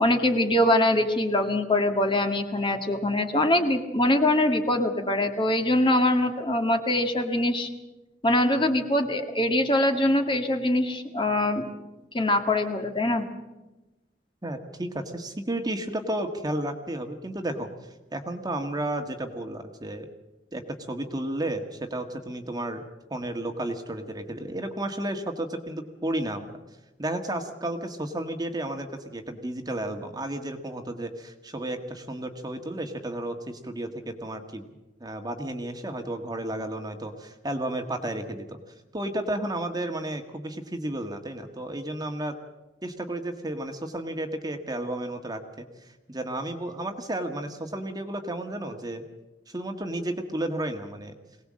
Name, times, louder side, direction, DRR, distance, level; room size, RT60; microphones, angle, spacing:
voice 1, 0.0-7.7 8.2-11.7 12.1-13.2, left 1 dB, 30° left, 5 dB, 1.8 m, -23 dB
voice 2, 14.4-17.7 18.1-20.1 20.5-22.8 23.1-26.5 27.0-34.7 35.0-38.6 38.9-42.3 42.8-45.7 46.1-49.0 49.5-51.2, right 1 dB, 25° right, 6 dB, 1.6 m, -32 dB
22.5 x 18.5 x 7.6 m, 1.1 s
head